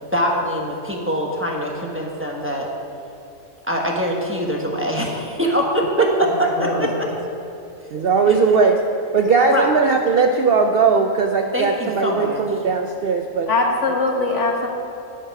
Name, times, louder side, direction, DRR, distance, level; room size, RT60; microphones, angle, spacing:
voice 1, 0.1-2.7 3.6-6.1 6.4-7.1 7.8-8.4 9.5-9.8 11.5-12.4, equal, 10° right, -1 dB, 1.1 m, -24 dB
voice 2, 7.9-8.8 9.1-13.5, right 5 dB, 60° right, 4 dB, 0.6 m, -18 dB
voice 3, 13.5-14.7, left 3 dB, 60° left, 1 dB, 1.6 m, -21 dB
10.5 x 8.2 x 5.8 m, 2.7 s
omnidirectional pair, 1.4 m